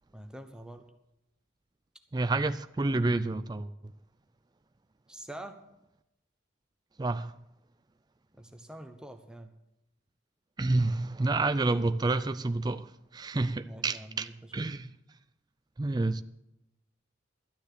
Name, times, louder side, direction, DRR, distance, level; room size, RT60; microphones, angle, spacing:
voice 1, 0.1-0.8 5.1-5.6 8.4-9.5 13.6-14.7, right 1 dB, 5° right, 0.9 m, -46 dB
voice 2, 2.1-3.7 7.0-7.4 10.6-14.9 15.8-16.2, right 2 dB, 20° right, 0.4 m, -29 dB
13.5 x 9.7 x 6.6 m
head